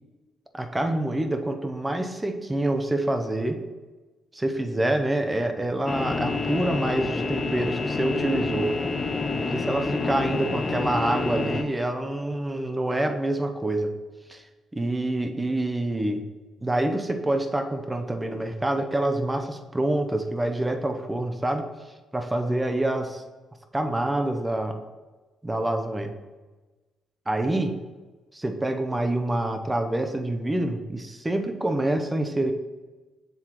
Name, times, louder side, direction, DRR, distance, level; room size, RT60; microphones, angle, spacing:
voice 1, 0.5-3.6 4.3-8.8 9.5-13.9 14.3-14.4 14.7-16.3 16.6-21.7 22.1-23.2 23.7-24.8 25.4-26.2 27.3-27.8 28.3-32.5, right 1 dB, 15° right, 6 dB, 0.7 m, -26 dB
sound 1, 5.9-11.6, left 3 dB, 35° left, 0.6 m, -28 dB
7.4 x 7.0 x 3.0 m, 1.2 s
cardioid pair, 90°, 0 cm